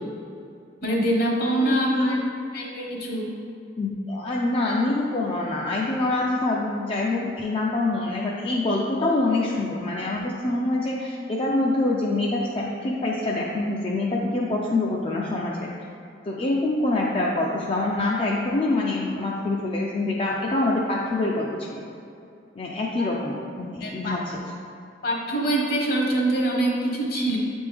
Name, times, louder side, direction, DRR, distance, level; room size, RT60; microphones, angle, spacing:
voice 1, 0.8-2.2 2.5-3.3 23.0-23.1 23.8-24.2 25.0-27.4, right 1 dB, 55° left, -1 dB, 1.0 m, -24 dB
voice 2, 1.6-2.2 3.8-15.6 16.2-21.8 22.5-24.4, left 2 dB, 30° left, -3 dB, 0.4 m, -25 dB
8.0 x 3.5 x 3.4 m, 2.5 s
head